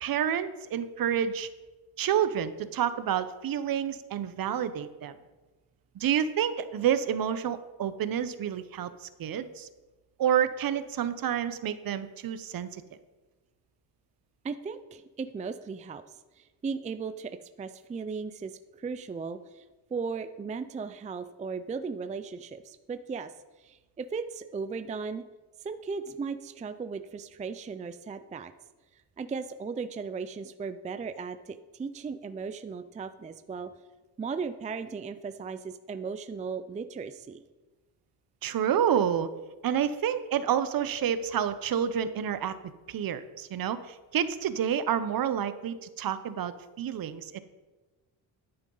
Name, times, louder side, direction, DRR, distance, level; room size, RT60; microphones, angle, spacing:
voice 1, 0.0-1.5 2.0-5.1 5.9-9.7 10.2-12.8 38.4-39.3 39.6-42.5 42.9-47.4, right 9 dB, 50° right, 13 dB, 0.8 m, -29 dB
voice 2, 14.4-16.0 16.4-19.6 19.9-23.3 23.6-25.2 25.6-28.5 28.9-33.7 34.2-37.4, right 5 dB, 15° right, 11 dB, 0.4 m, -37 dB
10.5 x 8.9 x 3.9 m, 1.2 s
cardioid pair, 90°, 44 cm